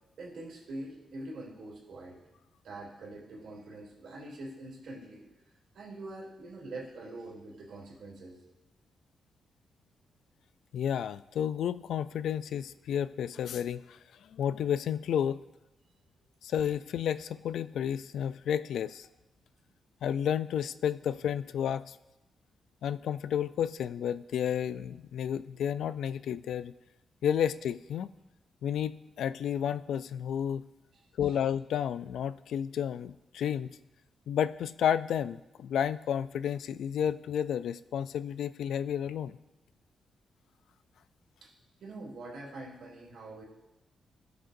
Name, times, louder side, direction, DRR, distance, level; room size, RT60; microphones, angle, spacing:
voice 1, 0.2-2.2 2.6-5.2 5.7-8.4 31.2-31.3 41.4-41.5 41.8-43.4, right 2 dB, 70° right, -2 dB, 2.9 m, -44 dB
voice 2, 10.7-15.4 16.4-19.1 20.0-22.0 22.8-26.7 27.2-28.1 28.6-30.6 31.2-33.7 34.3-39.4, left 9 dB, 85° left, 15 dB, 0.3 m, -31 dB
18.5 x 6.6 x 2.6 m, 0.97 s
wide cardioid pair, 160°, 0 cm